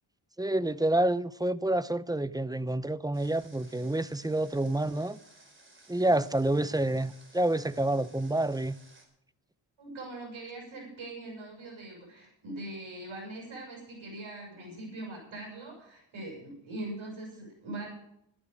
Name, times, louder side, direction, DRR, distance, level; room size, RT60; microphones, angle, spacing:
voice 1, 0.4-5.2 5.9-8.8, right 1 dB, 10° right, 0.6 m, -28 dB
Water, 3.1-9.1, right 2 dB, 25° right, 3.9 m, -58 dB
voice 2, 9.8-17.9, right 2 dB, 80° right, 6.2 m, -42 dB
12.0 x 11.0 x 6.5 m
cardioid pair, 70°, 46 cm